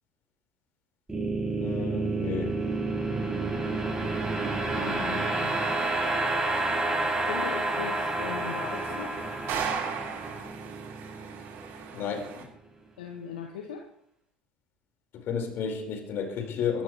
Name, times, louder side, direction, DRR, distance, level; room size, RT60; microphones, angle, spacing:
sound 1, 1.1-12.3, right 2 dB, 15° right, 7.2 m, -30 dB
voice 1, 1.6-2.6 11.9-12.4 15.1-16.8, left 6 dB, 55° left, 4.9 m, -32 dB
voice 2, 4.7-5.6 7.3-9.2 13.0-13.9, left 7 dB, 75° left, 1.8 m, -39 dB
sound 2, 5.3-12.4, right 6 dB, 55° right, 7.0 m, -39 dB
22.5 x 14.0 x 3.2 m
hypercardioid pair, 65°, 5 cm